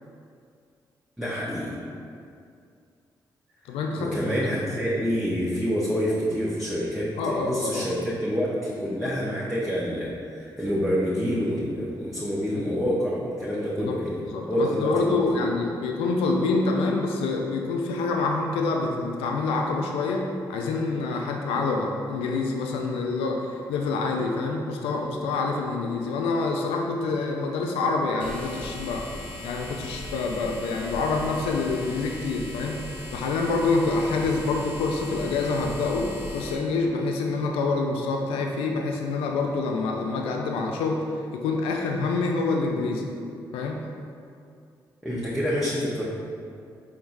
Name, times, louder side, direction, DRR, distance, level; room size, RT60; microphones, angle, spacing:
voice 1, 1.2-1.7 4.0-14.2 14.5-15.5 45.0-46.0, equal, 5° right, -8 dB, 0.9 m, -27 dB
voice 2, 3.7-4.3 7.2-7.9 13.8-14.0 14.3-29.1 29.4-32.8 33.1-41.1 41.3-43.1 43.5-43.8, left 3 dB, 85° left, 1 dB, 0.4 m, -26 dB
sound 1, 28.2-36.5, left 1 dB, 60° left, 0.8 m, -39 dB
4.5 x 3.6 x 2.6 m, 2.4 s
hypercardioid pair, 45°, 10 cm